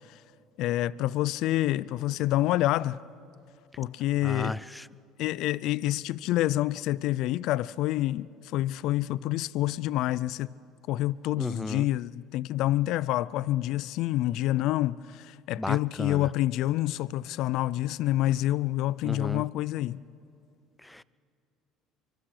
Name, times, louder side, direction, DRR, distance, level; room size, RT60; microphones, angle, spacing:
voice 1, 0.6-3.0 3.8-4.6 5.2-10.5 10.9-20.0, left 15 dB, 70° left, 0.4 m, -27 dB
voice 2, 4.2-4.9 11.4-11.9 15.6-16.3 19.0-19.4 20.8-21.0, left 1 dB, 5° left, 0.5 m, -34 dB
24.5 x 24.5 x 4.9 m
supercardioid pair, 85°, 0 cm